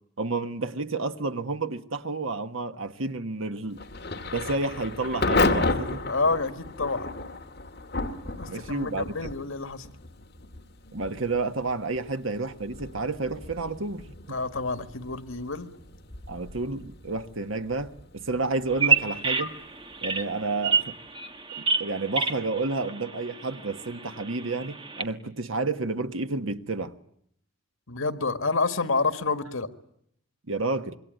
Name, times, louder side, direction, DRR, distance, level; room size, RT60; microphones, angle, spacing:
voice 1, 0.2-3.8 4.3-6.1 8.5-9.4 10.9-14.4 16.3-19.5 20.0-20.9 21.6-26.9 30.5-31.0, right 3 dB, 80° right, 1.4 m, -30 dB
Thunder / Rain, 3.7-20.5, left 3 dB, 50° left, 2.3 m, -33 dB
voice 2, 6.1-7.1 8.4-9.9 14.3-15.7 27.9-29.7, left 3 dB, 85° left, 1.9 m, -28 dB
Bird vocalization bird call bird song, 18.7-25.0, right 5 dB, 25° right, 1.5 m, -29 dB
26.5 x 23.0 x 9.1 m
head